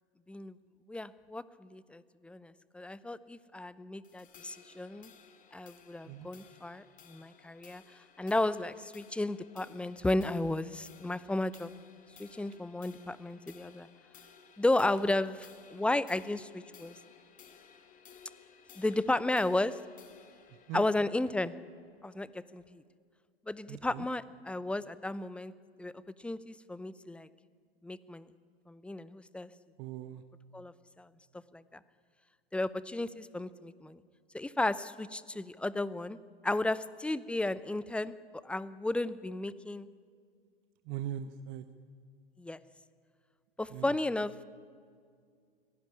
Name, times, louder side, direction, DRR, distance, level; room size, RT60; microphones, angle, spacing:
voice 1, 0.9-5.1 5.5-7.8 8.2-11.7 12.2-13.9 14.6-17.0 18.7-19.8 20.7-21.5 22.0-22.8 23.5-25.5 25.8-25.9 26.2-27.3 27.8-28.3 28.7-29.5 30.5-31.1 31.5-31.8 32.5-34.0 34.3-36.2 36.4-38.1 38.4-39.9 42.4-42.6 43.6-44.3, left 2 dB, 5° left, 17 dB, 0.7 m, -33 dB
sound 1, 4.0-22.6, left 7 dB, 25° left, 2.6 m, -58 dB
voice 2, 23.7-24.0 29.8-30.2 40.9-41.7 43.7-43.9, right 11 dB, 40° right, 11 dB, 1.1 m, -40 dB
23.5 x 17.5 x 9.9 m, 2.1 s
hypercardioid pair, 105°, 30 cm